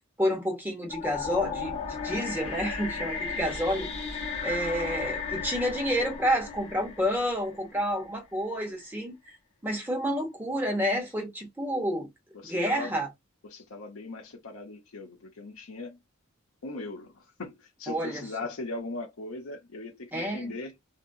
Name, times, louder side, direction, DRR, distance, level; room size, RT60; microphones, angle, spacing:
voice 1, 0.2-3.9 4.4-9.2 9.6-12.1 12.5-13.1 17.9-18.2 20.1-20.5, equal, 10° right, 1.2 m, -29 dB
sound 1, 0.9-8.0, left 5 dB, 30° left, 1.1 m, -35 dB
voice 2, 12.3-12.9 13.4-16.0 16.6-20.7, left 2 dB, 80° left, 0.8 m, -39 dB
2.9 x 2.9 x 2.7 m
head